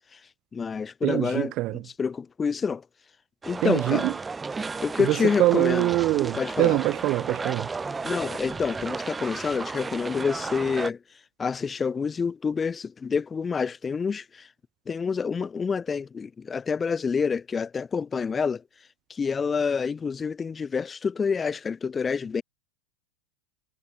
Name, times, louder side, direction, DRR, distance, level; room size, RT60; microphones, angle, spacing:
voice 1, 0.5-2.8 3.4-4.1 4.8-5.9 6.3-7.0 8.0-11.0 11.4-14.5 14.9-18.6 19.1-22.4, left 5 dB, 15° left, 1.0 m, -28 dB
voice 2, 1.0-1.8 3.6-4.1 5.1-7.7, right 18 dB, 40° right, 0.6 m, -24 dB
sound 1, 3.4-10.9, right 4 dB, 10° right, 1.0 m, -33 dB
supercardioid pair, 150°, 0 cm